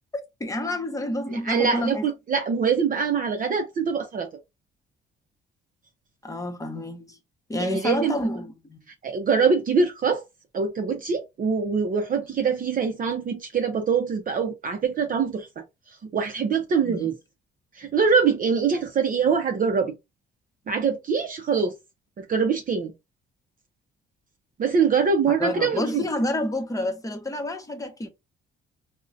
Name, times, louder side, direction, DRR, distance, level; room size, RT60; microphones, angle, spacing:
voice 1, 0.1-2.1 6.2-7.2 7.5-8.8 16.8-17.1 25.4-28.1, left 1 dB, 15° left, 0.8 m, -29 dB
voice 2, 1.3-4.3 7.6-8.2 9.0-10.2 10.5-15.5 15.9-17.1 17.7-19.9 20.7-21.7 22.2-22.9 24.6-26.1, right 5 dB, 45° right, 0.6 m, -24 dB
3.7 x 2.1 x 2.5 m
cardioid pair, 90°, 20 cm